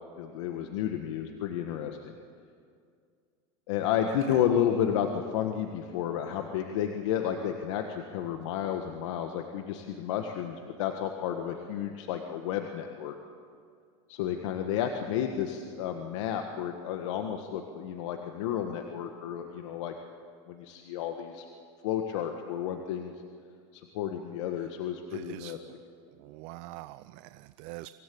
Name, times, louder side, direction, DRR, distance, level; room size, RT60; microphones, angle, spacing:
voice 1, 0.2-2.1 3.7-13.1 14.1-19.9 20.5-21.4 21.8-23.1 23.7-25.6, left 9 dB, 80° left, 4 dB, 1.6 m, -31 dB
voice 2, 4.1-4.4 24.6-24.7 25.1-25.8 26.1-27.9, right 17 dB, 50° right, 14 dB, 0.5 m, -44 dB
24.5 x 17.5 x 8.6 m, 2.2 s
supercardioid pair, 160°, 15 cm